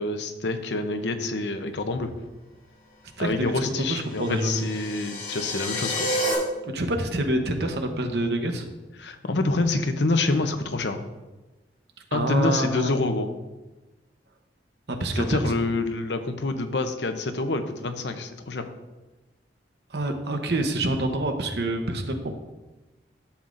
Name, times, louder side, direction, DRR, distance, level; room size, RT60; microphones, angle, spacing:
voice 1, 0.0-2.1 3.2-6.1 9.0-11.0 12.1-13.3 15.1-18.6, left 2 dB, 80° left, 8 dB, 0.7 m, -27 dB
voice 2, 3.2-3.5 3.8-4.7 6.6-8.7 12.1-13.1 14.9-15.4 19.9-22.4, right 1 dB, 70° right, 5 dB, 0.9 m, -27 dB
sound 1, 3.8-6.3, equal, 45° left, 2.5 m, -30 dB
11.5 x 7.2 x 2.6 m, 1.1 s
head